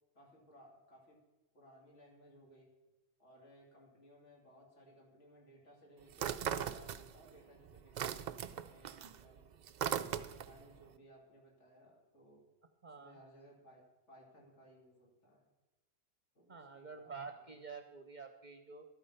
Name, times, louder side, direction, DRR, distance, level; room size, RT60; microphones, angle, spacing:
voice 1, 0.1-1.2 1.5-2.7 3.2-9.4 10.4-12.4 13.0-15.5 16.3-17.5, equal, 70° left, -2 dB, 2.8 m, -61 dB
sound 1, 6.1-7.4 7.7-10.6, right 9 dB, 65° right, 0.4 m, -38 dB
voice 2, 12.8-13.2 16.5-18.9, right 5 dB, 45° right, 6 dB, 0.8 m, -49 dB
12.0 x 8.8 x 5.6 m, 1.1 s
omnidirectional pair, 1.3 m